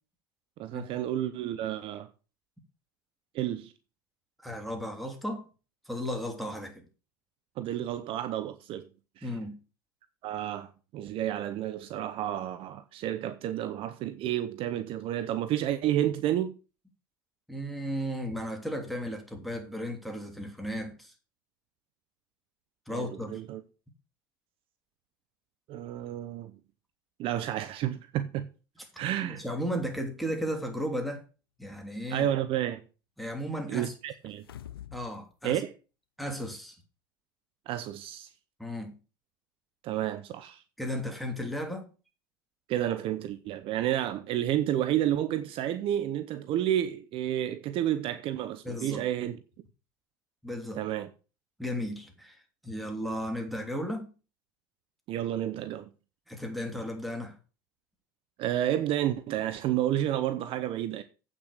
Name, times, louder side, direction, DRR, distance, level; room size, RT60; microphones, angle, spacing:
voice 1, 0.6-2.1 3.3-3.7 7.6-8.9 9.2-9.3 10.2-16.5 22.9-23.6 25.7-26.5 27.2-28.5 29.0-29.4 32.1-32.8 33.7-34.4 35.4-35.7 37.7-38.3 39.8-40.6 42.7-49.4 50.8-51.1 55.1-55.9 58.4-61.0, right 12 dB, 50° right, 0.8 m, -30 dB
voice 2, 4.4-5.5 5.9-6.8 9.2-9.6 17.5-21.1 22.9-23.4 29.2-31.2 31.6-32.3 33.2-33.9 34.9-35.6 36.2-36.7 38.6-38.9 40.8-41.9 48.6-49.0 50.4-50.8 51.6-54.1 56.3-57.4, equal, ahead, 3.1 m, -35 dB
sound 1, 34.2-35.1 35.5-35.6, left 11 dB, 85° left, 0.6 m, -45 dB
8.4 x 6.2 x 6.6 m
hypercardioid pair, 80°, 12 cm